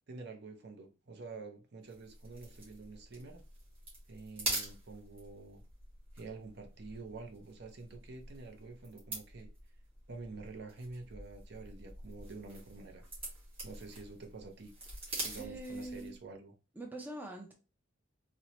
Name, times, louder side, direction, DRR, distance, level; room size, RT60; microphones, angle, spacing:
voice 1, 0.1-3.4 4.1-5.6 6.1-9.5 10.1-13.0 13.6-14.7 15.2-16.5, right 3 dB, 55° right, 0.6 m, -48 dB
sound 1, 1.9-16.2, right 2 dB, 30° right, 1.9 m, -45 dB
voice 2, 15.4-16.1 16.8-17.5, right 1 dB, 10° right, 0.4 m, -43 dB
4.2 x 2.1 x 2.9 m
head